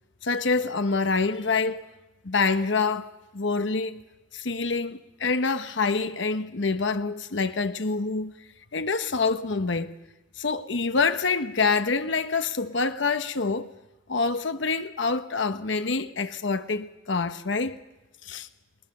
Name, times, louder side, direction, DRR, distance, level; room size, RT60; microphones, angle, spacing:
voice 1, 0.2-1.9 2.2-4.0 4.3-8.3 8.7-9.9 10.4-13.7 14.1-17.8 18.2-18.5, left 4 dB, 65° left, 1.0 m, -26 dB
20.5 x 20.0 x 6.7 m
head